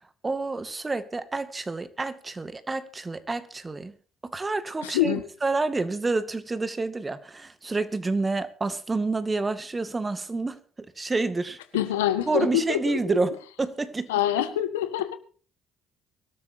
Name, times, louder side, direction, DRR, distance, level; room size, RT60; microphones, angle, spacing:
voice 1, 0.2-3.9 4.2-5.1 5.4-10.6 11.0-11.6 12.3-14.1, right 3 dB, 25° right, 2.2 m, -28 dB
voice 2, 4.8-5.2 11.7-13.2 14.1-15.2, left 11 dB, 85° left, 1.6 m, -25 dB
24.0 x 13.0 x 2.8 m
hypercardioid pair, 55°, 0 cm